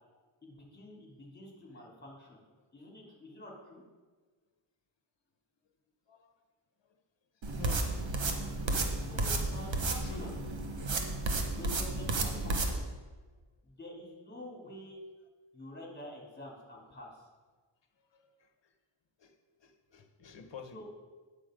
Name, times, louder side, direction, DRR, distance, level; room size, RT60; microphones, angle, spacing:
voice 1, 0.4-2.4 2.7-3.8 9.1-10.4 11.6-12.9 13.6-15.0 15.5-17.2 20.7-20.8, left 1 dB, 20° left, -1 dB, 2.7 m, -48 dB
sound 1, 7.4-12.7, right 2 dB, 65° right, 1.2 m, -32 dB
voice 2, 7.6-7.9 10.0-10.3 18.1-18.3 19.2-19.3 19.6-20.8, left 4 dB, 60° left, 6 dB, 1.2 m, -48 dB
9.1 x 6.9 x 5.0 m, 1.3 s
wide cardioid pair, 95°, 49 cm